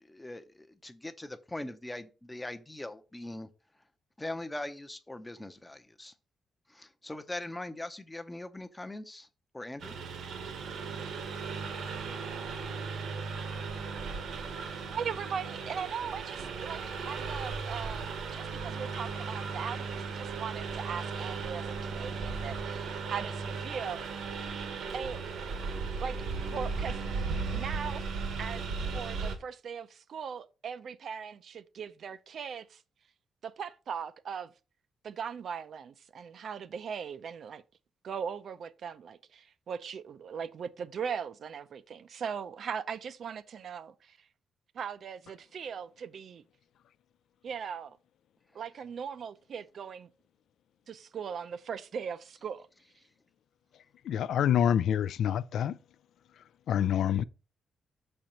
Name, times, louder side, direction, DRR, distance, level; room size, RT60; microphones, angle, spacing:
voice 1, 0.0-3.5 4.2-6.1 6.7-9.3 9.5-10.0, left 1 dB, 10° left, 0.6 m, -41 dB
Engine, 9.8-29.4, right 4 dB, 70° right, 1.1 m, -36 dB
voice 2, 14.9-24.3 24.9-25.2 26.0-26.2 26.5-27.0 27.4-28.1 28.4-28.6 28.9-32.8 33.4-34.5 35.0-37.6 38.0-44.2 44.7-46.4 47.4-48.0 48.5-50.1 50.9-52.7, right 7 dB, 55° right, 0.4 m, -39 dB
voice 3, 54.0-55.8 56.7-57.2, left 9 dB, 75° left, 0.3 m, -26 dB
6.3 x 4.4 x 5.0 m
cardioid pair, 145°, 0 cm